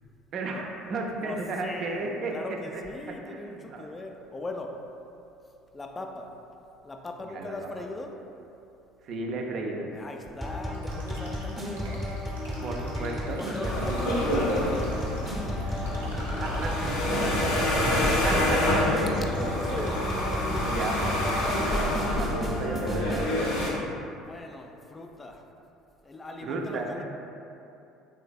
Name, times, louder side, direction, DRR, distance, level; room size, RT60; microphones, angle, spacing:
voice 1, 0.3-2.3 2.7-2.8 3.3-3.9 7.3-7.7 9.0-9.9 12.6-14.1 15.7-15.8 16.4-16.5 17.2-17.4 18.2-18.6 20.6-23.8 26.4-26.9, right 3 dB, 50° right, 1 dB, 0.4 m, -34 dB
voice 2, 1.2-4.8 5.7-6.3 6.8-8.2 9.9-12.1 13.3-15.1 16.5-16.7 17.1-18.6 19.0-20.1 24.1-25.5 26.0-27.0, left 2 dB, 20° left, 3 dB, 0.3 m, -39 dB
sound 1, 10.4-23.3, left 1 dB, 5° right, 0.7 m, -34 dB
sound 2, 10.7-22.0, equal, 85° right, 0.7 m, -46 dB
sound 3, 13.6-23.7, left 1 dB, 70° left, 0.6 m, -27 dB
3.2 x 3.2 x 2.2 m, 2.7 s
figure-of-eight pair, 60°, 0 cm